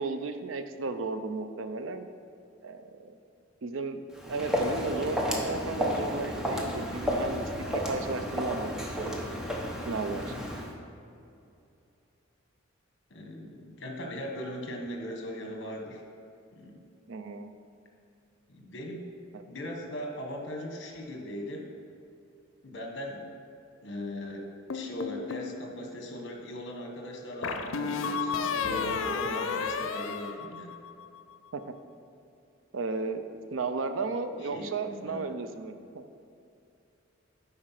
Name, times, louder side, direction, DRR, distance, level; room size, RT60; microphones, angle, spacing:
voice 1, 0.0-2.1 2.6-3.1 3.6-4.0 4.3-9.3 9.9-10.3 17.1-17.5 19.3-19.4 31.5-31.6 32.7-36.0, right 4 dB, 75° right, 9 dB, 0.5 m, -34 dB
Walk footsteps, 4.1-10.7, equal, 5° right, 0.8 m, -32 dB
voice 2, 13.1-16.0 16.5-16.8 18.5-19.1 19.5-21.7 22.6-23.3 23.8-24.5 24.7-30.7 34.5-35.3, left 1 dB, 60° left, 2 dB, 1.2 m, -39 dB
sound 1, 24.7-25.5 27.4-31.0, left 5 dB, 90° left, 0.6 m, -32 dB
9.7 x 4.3 x 5.8 m, 2.6 s
head